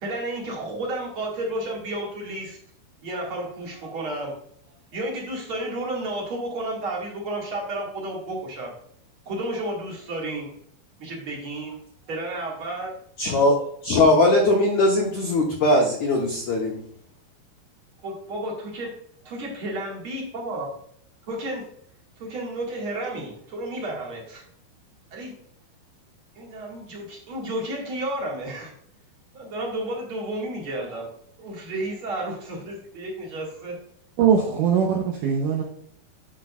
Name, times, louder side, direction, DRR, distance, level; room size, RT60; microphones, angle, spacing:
voice 1, 0.0-2.6 3.0-4.3 4.9-8.7 9.3-10.5 11.0-11.8 12.1-12.9 18.0-18.9 19.2-20.7 21.3-21.7 22.2-24.4 25.1-25.3 26.4-28.7 29.3-31.1 31.4-33.8, right 1 dB, 45° right, -2 dB, 2.0 m, -32 dB
voice 2, 13.2-16.8, left 2 dB, 80° left, -1 dB, 1.7 m, -20 dB
voice 3, 34.2-35.6, right 7 dB, 90° right, 2 dB, 1.8 m, -21 dB
10.0 x 6.2 x 2.4 m, 0.66 s
omnidirectional pair, 4.8 m